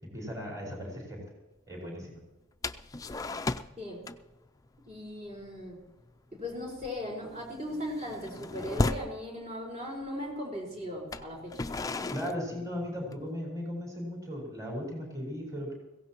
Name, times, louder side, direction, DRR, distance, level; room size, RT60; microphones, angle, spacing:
voice 1, 0.0-1.2 1.7-2.2 12.1-15.7, equal, 15° right, -3 dB, 5.1 m, -37 dB
sound 1, 2.6-4.4 4.7-4.9 5.3-5.6 5.8-6.1 6.5-9.2 10.0-10.1 11.0-13.3, left 2 dB, 15° left, 0.4 m, -35 dB
voice 2, 4.9-5.8 6.3-11.7, left 1 dB, 35° right, -2 dB, 4.7 m, -38 dB
22.0 x 16.5 x 3.0 m, 1.1 s
head